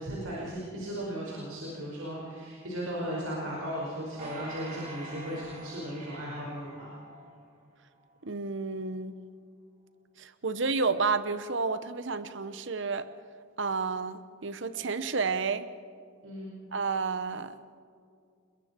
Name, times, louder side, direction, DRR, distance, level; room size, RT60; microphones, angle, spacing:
voice 1, 0.0-6.9 16.2-16.5, equal, 85° right, -4 dB, 5.1 m, -36 dB
sound 1, 4.2-7.6 8.1-8.2, right 2 dB, 40° right, 3.6 m, -45 dB
voice 2, 8.2-9.1 10.2-13.1 13.6-15.7 16.7-17.5, right 4 dB, 60° right, 12 dB, 0.9 m, -31 dB
29.5 x 21.5 x 4.5 m, 2.3 s
head